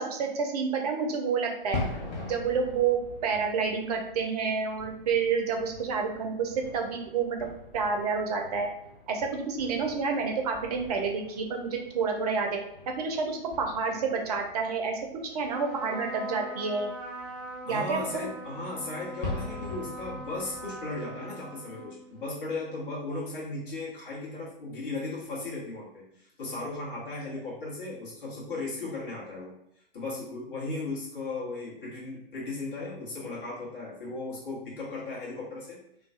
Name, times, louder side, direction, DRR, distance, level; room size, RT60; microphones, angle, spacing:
voice 1, 0.0-1.8 2.2-7.5 7.7-8.7 9.1-12.5 13.0-16.9 17.6-18.2, right 5 dB, 40° right, 3 dB, 0.5 m, -29 dB
sound 1, 1.6-21.0, left 3 dB, 45° left, 0.8 m, -43 dB
Trumpet, 15.5-22.3, right 1 dB, ahead, 1.0 m, -42 dB
voice 2, 17.7-29.5 29.9-35.8, left 2 dB, 65° left, -6 dB, 1.1 m, -36 dB
2.3 x 2.3 x 2.5 m, 0.78 s
figure-of-eight pair, 110°, 29 cm